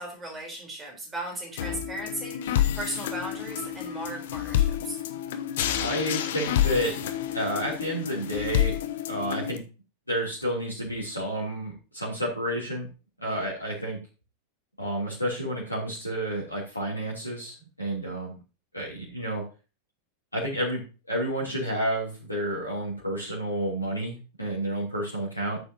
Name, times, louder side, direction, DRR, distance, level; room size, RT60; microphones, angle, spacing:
voice 1, 0.0-5.0, right 1 dB, 15° right, 1 dB, 3.9 m, -37 dB
sound 1, 1.6-9.6, left 11 dB, 55° left, 0.9 m, -29 dB
voice 2, 5.8-6.9 7.3-8.7 9.1-9.6 10.1-12.9 13.2-14.0 14.8-18.4 18.7-19.4 20.3-25.6, equal, 85° left, -5 dB, 3.3 m, -30 dB
13.0 x 6.8 x 2.9 m, 0.31 s
figure-of-eight pair, 90°, 0 cm